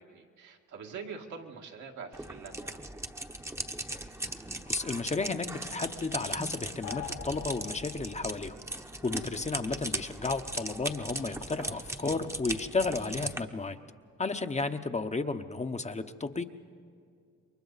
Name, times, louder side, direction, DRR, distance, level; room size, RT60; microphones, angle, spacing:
voice 1, 0.0-2.8 9.1-9.5, right 5 dB, 75° right, 1 dB, 2.1 m, -45 dB
sound 1, 2.1-13.4, right 1 dB, 10° right, 1.0 m, -38 dB
voice 2, 4.7-8.6 9.0-13.8 14.2-16.4, left 3 dB, 25° left, 7 dB, 0.9 m, -33 dB
sound 2, 6.8-8.3, left 9 dB, 80° left, 1.7 m, -43 dB
28.0 x 23.0 x 4.1 m, 2.3 s
cardioid pair, 90°, 30 cm